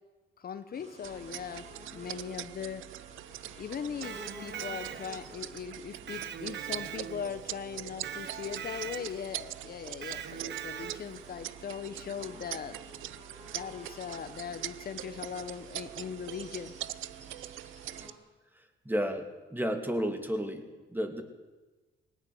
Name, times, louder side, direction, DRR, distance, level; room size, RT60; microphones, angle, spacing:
voice 1, 0.4-1.6 1.9-2.8 3.6-12.8 13.5-16.7, left 7 dB, 50° left, 11 dB, 1.1 m, -39 dB
sound 1, 0.7-18.1, right 1 dB, 35° right, 5.0 m, -52 dB
sound 2, 1.0-18.1, right 15 dB, 80° right, 0.6 m, -43 dB
Electric guitar, 3.9-5.4 6.1-7.5 8.0-9.3 10.0-11.2, right 9 dB, 60° right, 1.1 m, -41 dB
voice 2, 18.8-20.6 20.9-21.2, equal, 10° right, 5 dB, 2.7 m, -31 dB
19.5 x 18.5 x 7.8 m, 1.2 s
cardioid pair, 90°, 20 cm